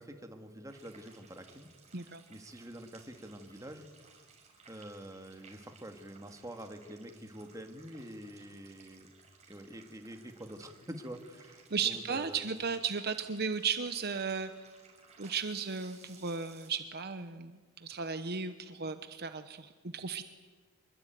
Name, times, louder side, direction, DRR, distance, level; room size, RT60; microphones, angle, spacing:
voice 1, 0.0-1.7 2.3-3.9 4.7-9.1 9.5-12.5, right 1 dB, 15° right, 5 dB, 2.1 m, -46 dB
sound 1, 0.7-16.7, right 5 dB, 30° right, 5.9 m, -60 dB
voice 2, 1.9-2.2 11.7-14.5 15.2-20.2, right 5 dB, 50° right, 10 dB, 1.0 m, -35 dB
25.0 x 22.0 x 9.3 m, 1.4 s
head